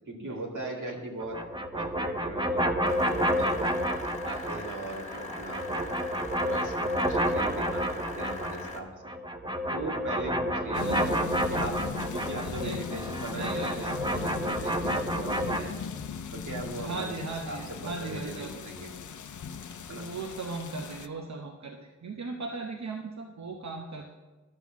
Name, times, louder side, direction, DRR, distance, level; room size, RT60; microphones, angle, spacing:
voice 1, 0.1-1.4 1.7-3.8 4.2-5.9 6.4-8.9 9.7-11.0 11.5-11.8 12.1-15.9 16.3-18.9 19.9-20.1, right 2 dB, 90° right, -1 dB, 2.2 m, -39 dB
sound 1, 1.2-4.8 5.1-8.8 9.0-15.6, equal, 15° right, 0.8 m, -30 dB
sound 2, 2.8-8.8, left 2 dB, 25° left, 1.6 m, -42 dB
sound 3, 10.7-21.1, left 6 dB, 85° left, 0.6 m, -39 dB
voice 2, 10.8-11.4 12.4-12.9 13.3-13.9 16.8-18.5 19.9-24.1, right 3 dB, 70° right, 2 dB, 0.9 m, -38 dB
12.0 x 6.1 x 7.2 m, 1.2 s
wide cardioid pair, 100°, 29 cm